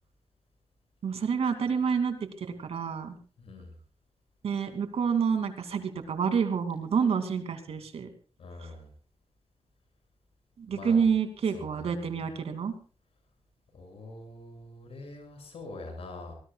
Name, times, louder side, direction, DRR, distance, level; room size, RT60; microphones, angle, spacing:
voice 1, 1.0-3.2 4.4-8.1 8.6-8.7 10.6-12.7, right 6 dB, 80° right, 7 dB, 2.6 m, -28 dB
voice 2, 3.4-3.7 8.4-8.9 10.7-11.0 11.5-12.2 13.7-16.3, left 2 dB, 75° left, 4 dB, 6.9 m, -44 dB
25.5 x 19.5 x 2.4 m, 0.39 s
wide cardioid pair, 180°, 10 cm